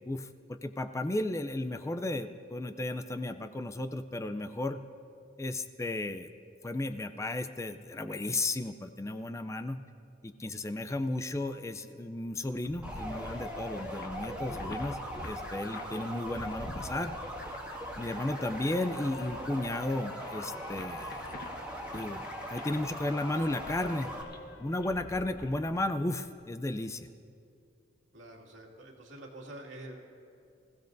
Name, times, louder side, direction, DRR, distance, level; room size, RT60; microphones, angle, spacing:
voice 1, 0.0-4.8 5.4-6.3 6.6-9.8 10.2-15.0 15.2-17.1 18.0-21.2 21.9-24.1 24.6-27.1, left 2 dB, 15° left, 9 dB, 0.4 m, -34 dB
sound 1, 12.4-25.8, left 1 dB, 55° left, 1.3 m, -47 dB
sound 2, 12.8-24.2, equal, 10° right, 2.0 m, -40 dB
Wind instrument woodwind instrument, 18.0-25.4, left 3 dB, 90° left, 0.8 m, -52 dB
voice 2, 28.1-30.0, right 1 dB, 80° right, -1 dB, 2.3 m, -47 dB
26.0 x 16.0 x 2.6 m, 2.4 s
head